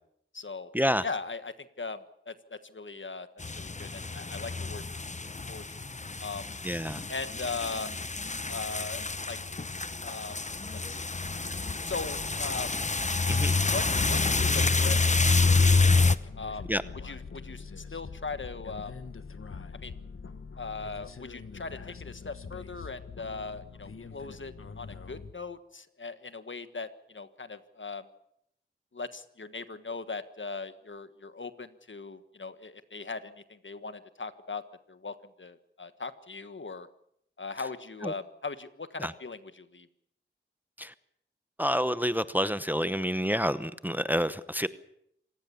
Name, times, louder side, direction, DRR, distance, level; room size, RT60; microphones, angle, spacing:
voice 1, 0.3-0.7 1.0-3.3 3.5-5.1 5.5-5.6 6.2-6.5 7.1-7.9 8.5-9.4 10.0-10.4 10.9-11.1 11.8-12.7 13.7-15.9 16.3-16.7 17.0-18.9 19.7-19.9 20.6-28.1 28.9-34.6 34.9-36.9 37.4-39.9, left 4 dB, 65° left, 1.5 m, -39 dB
sound 1, 3.4-16.2, left 3 dB, 35° left, 0.9 m, -27 dB
voice 2, 6.6-7.0 13.3-13.6 16.7-16.8 38.0-38.1 39.0-39.1 40.8-40.9 41.6-44.7, equal, 10° right, 0.9 m, -28 dB
sound 2, 13.2-25.3, left 5 dB, 85° left, 1.3 m, -44 dB
26.5 x 18.0 x 7.1 m
wide cardioid pair, 65°, 21 cm